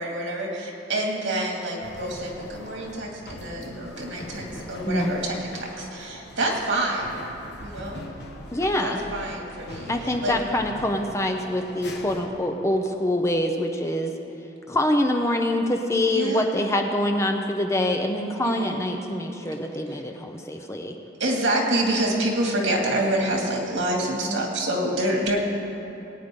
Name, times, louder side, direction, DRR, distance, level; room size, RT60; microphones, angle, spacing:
voice 1, 0.0-7.2 7.6-8.1 8.8-10.3 16.1-16.5 18.4-18.8 19.9-20.0 21.2-25.4, right 1 dB, 90° right, -1 dB, 2.4 m, -27 dB
sound 1, 1.8-12.3, left 1 dB, 60° left, 1.3 m, -41 dB
voice 2, 8.5-9.0 9.9-14.1 14.7-20.9, left 1 dB, 15° left, 3 dB, 0.7 m, -25 dB
20.0 x 9.4 x 3.8 m, 2.9 s
head